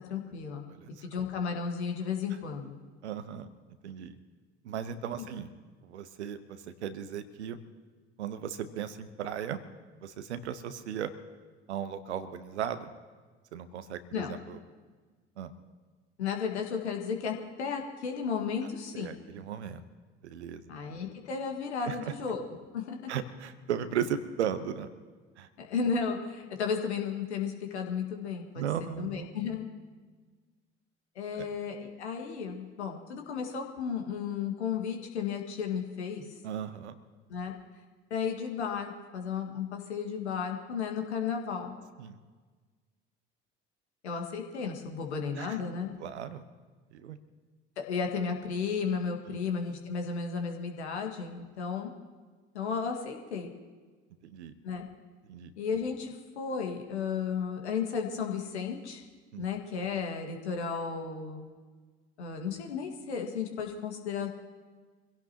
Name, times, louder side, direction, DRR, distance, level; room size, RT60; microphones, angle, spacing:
voice 1, 0.1-0.6 1.0-2.8 14.1-14.3 16.2-19.2 20.7-22.4 22.7-23.1 25.6-28.6 29.0-29.7 31.2-36.2 37.3-37.5 38.1-41.7 44.0-45.9 47.8-51.9 52.5-53.5 54.6-54.8 55.6-59.0 59.4-61.5 62.2-64.3, left 6 dB, 70° left, 3 dB, 1.9 m, -34 dB
voice 2, 0.7-1.1 3.0-3.5 3.8-4.2 4.6-5.5 5.8-7.6 8.2-9.6 10.0-11.1 11.7-12.9 13.5-14.6 15.4-15.5 19.0-19.8 20.2-20.6 21.8-22.1 23.1-24.9 25.4-25.5 28.6-29.3 31.3-31.5 36.4-37.0 42.0-42.2 45.4-45.6 46.0-46.4 46.9-47.2 49.3-49.4 54.2-54.5 55.2-55.5 59.3-59.4, right 9 dB, 70° right, 12 dB, 1.0 m, -36 dB
25.0 x 16.5 x 3.0 m, 1.4 s
figure-of-eight pair, 60°, 34 cm